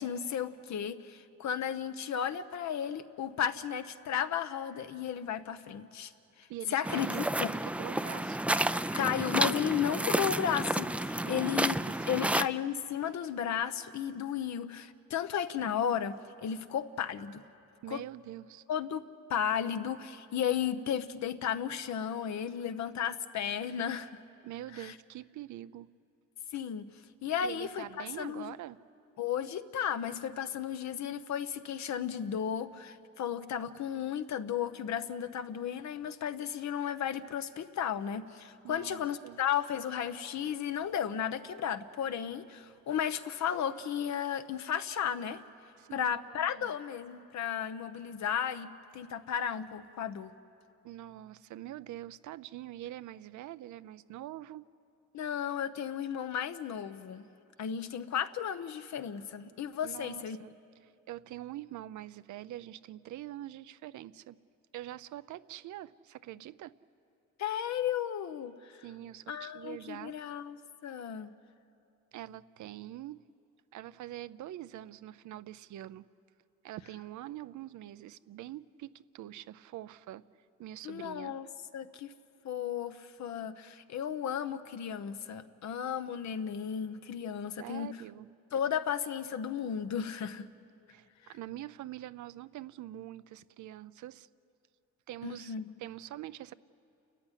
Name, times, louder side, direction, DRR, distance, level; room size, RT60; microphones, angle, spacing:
voice 1, 0.0-6.1 6.4-7.1 7.4-7.5 8.9-11.8 12.1-17.4 17.9-18.0 18.7-19.0 19.3-24.2 24.7-24.9 26.5-28.5 29.2-45.4 45.9-50.3 55.1-57.2 57.6-60.4 67.4-68.8 69.3-71.3 80.8-81.5 81.7-82.1 82.4-87.9 88.5-90.5 95.2-95.7, left 8 dB, 65° left, 11 dB, 1.0 m, -34 dB
voice 2, 6.5-7.3 7.6-8.4 11.2-11.6 11.9-12.4 17.8-18.6 24.4-25.9 27.4-28.8 38.6-39.4 45.8-46.1 46.5-46.7 50.8-54.7 59.8-60.5 60.8-64.4 64.7-66.7 68.8-70.1 72.1-73.3 73.7-76.0 76.6-80.2 80.6-81.4 87.6-88.3 90.9-94.3 95.1-96.5, right 13 dB, 75° right, 15 dB, 0.7 m, -44 dB
sound 1, 6.8-12.5, right 1 dB, 5° right, 0.5 m, -31 dB
29.5 x 14.0 x 10.0 m, 2.6 s
cardioid pair, 90°, 30 cm